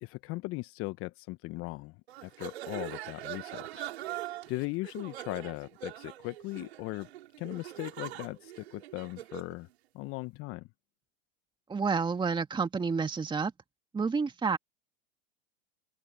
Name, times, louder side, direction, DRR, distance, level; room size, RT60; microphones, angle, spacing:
voice 1, 0.0-3.9 4.5-7.1 7.4-9.7 9.9-10.7, left 22 dB, 40° left, 1.2 m, -38 dB
sound 1, 2.1-9.5, right 14 dB, 70° right, 4.7 m, -42 dB
voice 2, 11.7-13.5 13.9-14.6, right 5 dB, 15° right, 2.1 m, -29 dB
open air
hypercardioid pair, 100°, 33 cm